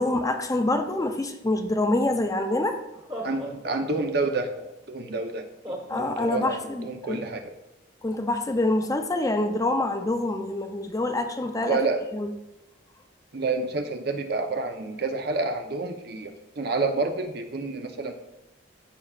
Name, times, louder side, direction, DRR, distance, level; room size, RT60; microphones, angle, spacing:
voice 1, 0.0-2.8 5.9-7.2 8.0-11.8 12.1-12.3, left 2 dB, 15° left, 5 dB, 0.5 m, -26 dB
Laughter, 2.9-4.7 5.6-6.9, right 1 dB, 25° right, 1.2 m, -37 dB
voice 2, 3.2-4.5 4.9-7.5 11.7-12.0 13.3-16.3 16.6-18.1, right 3 dB, 55° right, 5 dB, 0.7 m, -29 dB
13.5 x 5.5 x 2.4 m, 0.93 s
head